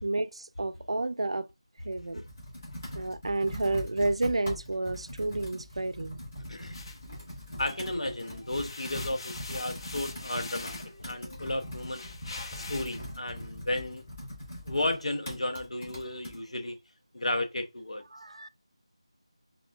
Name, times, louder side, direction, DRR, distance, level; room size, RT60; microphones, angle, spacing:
voice 1, 0.0-1.5 1.8-2.2 2.9-6.2 18.1-18.5, right 2 dB, 70° right, 0.4 m, -30 dB
Computer keyboard, 1.8-16.4, left 1 dB, 20° left, 1.7 m, -42 dB
sound 1, 6.7-7.9 8.3-13.0, left 3 dB, 55° left, 1.1 m, -43 dB
sound 2, 7.5-9.0 9.4-12.2 12.6-13.5, left 1 dB, 40° left, 2.1 m, -52 dB
voice 2, 7.6-10.8 11.0-12.0 12.7-14.0 14.7-16.8 17.1-18.0, left 1 dB, 85° left, 0.8 m, -33 dB
5.5 x 2.4 x 2.3 m
figure-of-eight pair, 175°, 3 cm